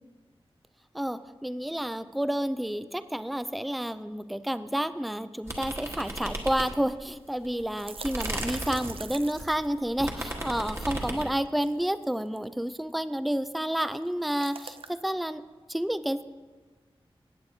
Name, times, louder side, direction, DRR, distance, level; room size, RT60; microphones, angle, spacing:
voice 1, 0.9-15.4 15.7-16.2, equal, ahead, 12 dB, 0.3 m, -30 dB
sound 1, 5.5-7.0 7.4-11.4, right 1 dB, 25° right, 1.4 m, -35 dB
sound 2, 5.8-5.9 6.2-6.3 7.2-10.3 11.4-12.4 13.7-15.1, right 5 dB, 70° right, 0.5 m, -44 dB
16.5 x 8.1 x 2.7 m, 1.4 s
wide cardioid pair, 105°, 10 cm